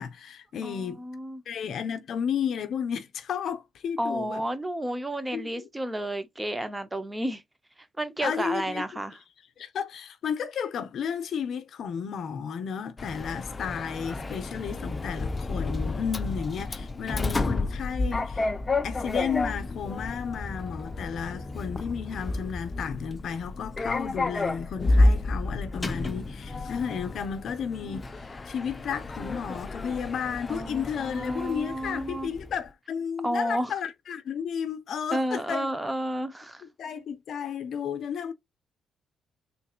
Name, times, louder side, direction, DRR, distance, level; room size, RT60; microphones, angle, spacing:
voice 1, 0.0-1.0 1.5-4.4 5.3-5.7 8.2-8.8 9.6-18.5 18.8-28.1 28.5-35.7 36.8-38.3, left 7 dB, 65° left, 0.6 m, -33 dB
voice 2, 0.6-1.4 4.0-7.4 8.0-9.2 30.5-32.3 33.2-33.8 35.1-36.6, right 1 dB, 10° right, 0.7 m, -31 dB
Sliding door, 13.0-32.6, left 2 dB, 25° left, 0.5 m, -30 dB
3.7 x 2.8 x 2.4 m
cardioid pair, 90°, 0 cm